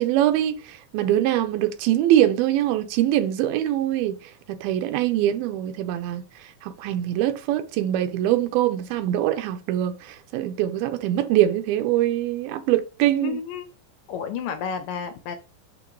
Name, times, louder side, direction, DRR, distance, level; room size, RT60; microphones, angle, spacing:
voice 1, 0.0-6.2 6.6-13.4, right 12 dB, 90° right, 2.7 m, -23 dB
voice 2, 13.2-13.7 14.1-15.4, left 7 dB, 75° left, 2.2 m, -31 dB
12.0 x 4.2 x 3.1 m
omnidirectional pair, 4.2 m